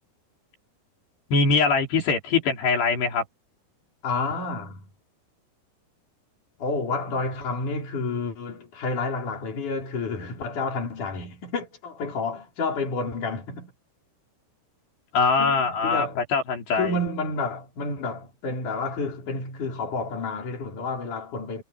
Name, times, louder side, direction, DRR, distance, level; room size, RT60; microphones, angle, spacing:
voice 1, 1.3-3.2 15.1-16.9, left 4 dB, 85° left, 6.5 m, -22 dB
voice 2, 4.0-4.9 6.6-13.7 15.4-16.2 16.7-21.6, left 3 dB, 50° left, 6.6 m, -30 dB
omnidirectional pair, 4.7 m